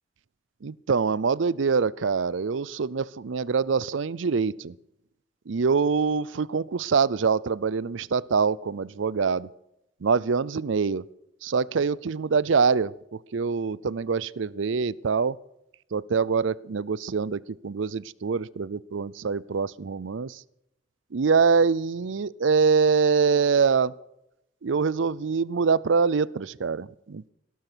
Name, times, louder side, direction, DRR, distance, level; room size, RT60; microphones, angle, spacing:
voice 1, 0.6-4.7 5.5-9.5 10.0-11.0 11.4-15.4 15.9-20.4 21.1-23.9 24.6-27.3, right 5 dB, 80° right, 22 dB, 0.5 m, -24 dB
18.5 x 12.0 x 6.2 m, 0.83 s
head